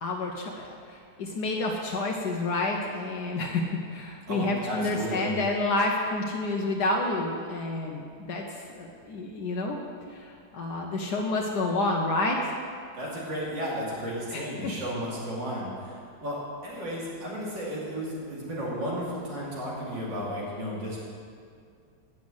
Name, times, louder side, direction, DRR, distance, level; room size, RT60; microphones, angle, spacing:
voice 1, 0.0-9.8 10.1-12.5 14.3-14.7, left 2 dB, 70° left, 0 dB, 1.4 m, -29 dB
voice 2, 4.3-5.4 12.9-21.0, equal, 80° right, -6 dB, 3.4 m, -33 dB
9.0 x 7.2 x 8.0 m, 2.2 s
omnidirectional pair, 1.9 m